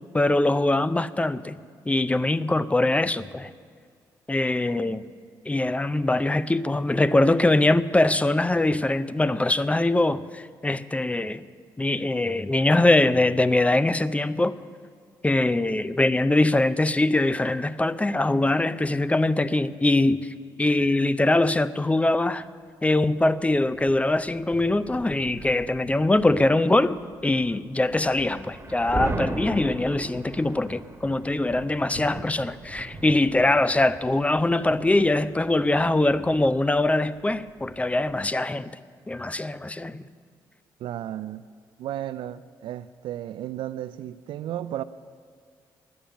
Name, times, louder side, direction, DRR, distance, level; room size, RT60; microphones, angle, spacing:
voice 1, 0.1-1.6 1.9-3.5 4.3-5.1 5.5-11.5 11.8-14.5 15.2-22.4 22.8-38.7 39.1-40.0, left 2 dB, 15° left, 0.5 m, -22 dB
sound 1, 23.3-38.2, right 2 dB, 30° right, 1.4 m, -39 dB
voice 2, 40.8-41.5 41.8-44.8, right 12 dB, 75° right, 0.3 m, -34 dB
10.0 x 8.7 x 8.9 m
supercardioid pair, 55°, 9 cm